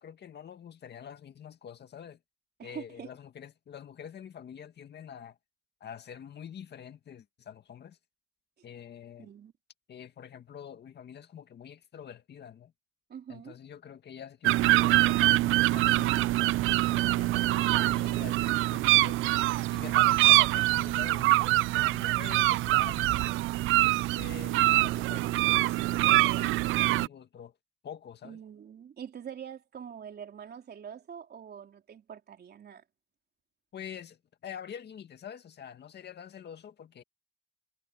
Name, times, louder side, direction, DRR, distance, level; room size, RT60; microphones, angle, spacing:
voice 1, 0.0-2.2 2.6-5.4 5.8-8.0 8.6-9.3 9.9-12.7 13.3-16.3 16.9-19.3 19.7-23.4 23.8-27.5 27.8-28.4 33.7-37.0, left 8 dB, 60° left, 2.0 m, -46 dB
voice 2, 2.6-3.1 9.2-9.5 13.1-13.6 28.2-32.8, right 8 dB, 55° right, 3.5 m, -44 dB
sound 1, 14.4-27.1, right 18 dB, 90° right, 0.4 m, -24 dB
cardioid pair, 90°, 20 cm